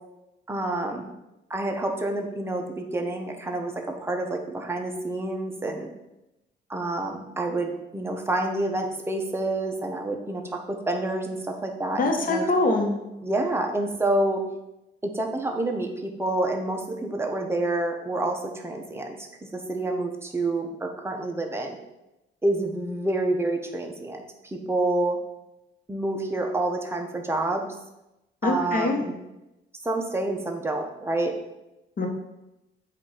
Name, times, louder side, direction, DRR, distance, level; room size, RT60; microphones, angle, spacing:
voice 1, 0.5-1.1 1.5-5.9 6.7-12.5 13.2-14.4 15.0-19.3 19.5-21.8 22.4-25.2 25.9-27.7 28.4-29.1 29.8-31.3, right 2 dB, 10° right, 2 dB, 1.1 m, -28 dB
voice 2, 11.9-12.9 28.4-29.0 32.0-32.1, left 2 dB, 45° left, 2 dB, 1.4 m, -23 dB
8.1 x 2.9 x 5.0 m, 0.93 s
cardioid pair, 90°, 20 cm